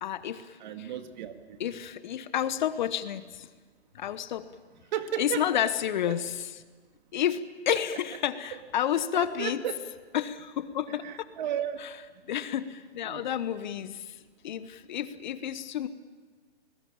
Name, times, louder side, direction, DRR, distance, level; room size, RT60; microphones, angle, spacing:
voice 1, 0.0-0.9 1.6-3.5 3.9-4.5 5.2-6.6 7.1-9.6 10.1-11.3 11.8-12.0 12.3-15.9, left 10 dB, 45° left, 14 dB, 1.1 m, -31 dB
voice 2, 0.6-1.6 4.9-5.5 9.1-9.8 11.0-11.8 13.1-13.2, right 10 dB, 45° right, 8 dB, 2.0 m, -33 dB
27.5 x 20.0 x 8.8 m, 1.4 s
hypercardioid pair, 145°, 33 cm